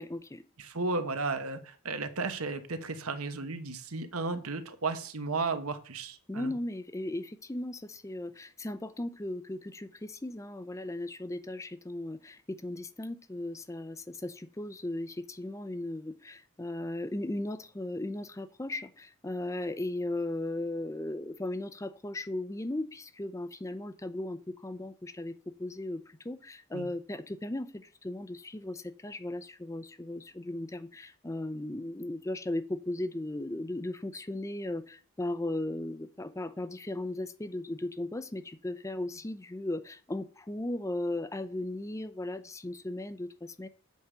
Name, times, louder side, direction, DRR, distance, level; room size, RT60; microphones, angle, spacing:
voice 1, 0.0-0.4 6.3-43.7, left 1 dB, 15° left, 12 dB, 0.5 m, -37 dB
voice 2, 0.6-6.5 26.7-26.9, right 3 dB, 85° right, 9 dB, 1.2 m, -34 dB
8.2 x 4.9 x 6.7 m, 0.40 s
head